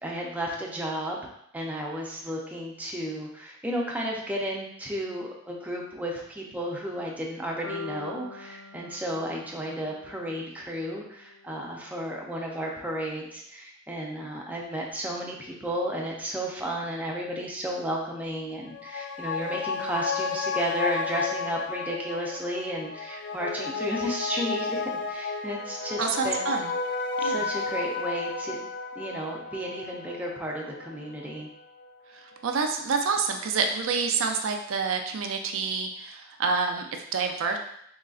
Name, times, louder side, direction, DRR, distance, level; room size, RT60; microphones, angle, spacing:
voice 1, 0.0-1.2 1.5-26.5 27.2-28.6 29.0-31.5, equal, 10° right, -2 dB, 0.5 m, -33 dB
sound 1, 7.6-11.7, left 3 dB, 80° left, 0.8 m, -44 dB
sound 2, 18.6-31.5 31.8-31.9, left 4 dB, 60° left, 0.3 m, -32 dB
voice 2, 26.0-26.7 27.2-27.5 32.1-37.6, right 5 dB, 80° right, 4 dB, 0.4 m, -28 dB
3.8 x 3.1 x 2.4 m, 0.71 s
head